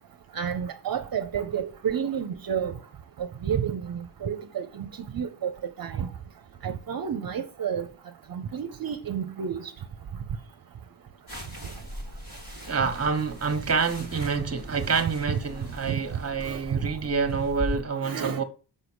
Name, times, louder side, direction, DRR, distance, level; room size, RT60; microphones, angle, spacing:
voice 1, 0.3-2.7 3.4-4.7 5.1-5.5 5.8-6.1 6.6-7.8 8.3-9.6 15.9-16.0 16.4-16.6 18.0-18.4, right 8 dB, 55° right, 0.7 m, -30 dB
sound 1, 11.3-17.8, equal, 55° left, 3.7 m, -40 dB
voice 2, 12.7-18.4, right 5 dB, 35° right, 1.3 m, -27 dB
6.8 x 5.3 x 6.2 m
wide cardioid pair, 145°, 43 cm